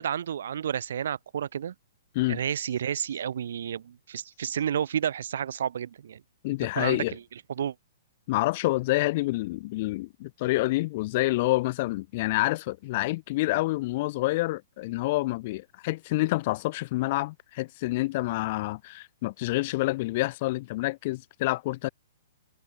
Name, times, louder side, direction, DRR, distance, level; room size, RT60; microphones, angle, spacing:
voice 1, 0.0-1.7 2.3-6.2 6.7-7.2 7.6-7.7, right 9 dB, 65° right, 5.2 m, -31 dB
voice 2, 6.4-7.1 8.3-21.9, left 20 dB, 45° left, 5.1 m, -28 dB
hypercardioid pair, 120°, 0 cm